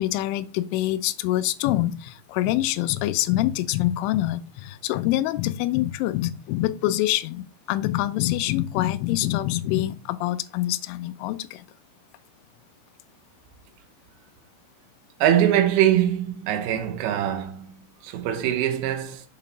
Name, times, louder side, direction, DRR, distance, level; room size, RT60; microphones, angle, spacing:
voice 1, 0.0-11.7, left 15 dB, 90° left, 3.1 m, -25 dB
voice 2, 15.2-19.2, right 11 dB, 75° right, 2.4 m, -23 dB
7.3 x 4.1 x 5.4 m
omnidirectional pair, 5.5 m